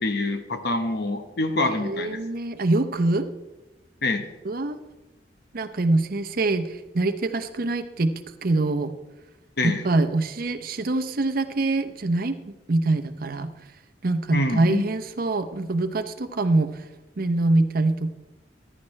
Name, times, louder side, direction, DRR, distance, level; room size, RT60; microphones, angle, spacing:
voice 1, 0.0-2.2 4.0-4.3 9.6-9.8 14.3-14.8, left 2 dB, 65° left, 7 dB, 1.2 m, -25 dB
voice 2, 1.6-3.3 4.4-4.8 5.5-8.1 8.4-8.9 9.6-13.5 14.0-16.9 17.2-18.2, right 2 dB, 55° right, 9 dB, 0.7 m, -24 dB
14.0 x 11.0 x 3.2 m, 1.1 s
head